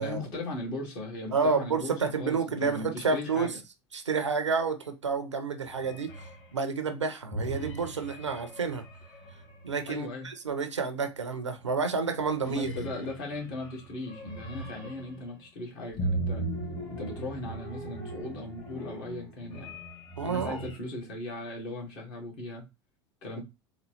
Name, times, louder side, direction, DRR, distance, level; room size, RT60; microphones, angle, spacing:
voice 1, 0.0-3.5 9.9-10.3 12.4-16.4 16.9-19.7 20.3-22.6 23.2-23.4, left 2 dB, 55° left, 1.7 m, -38 dB
voice 2, 1.3-3.5 3.9-6.1 6.5-8.8 9.6-12.7 20.2-20.6, right 4 dB, 85° right, 0.5 m, -29 dB
sound 1, 5.7-6.5 7.3-10.0 11.6-11.9 12.2-15.2 16.0-20.8, right 1 dB, 35° left, 1.6 m, -38 dB
3.9 x 2.2 x 3.1 m
figure-of-eight pair, 75°, 15 cm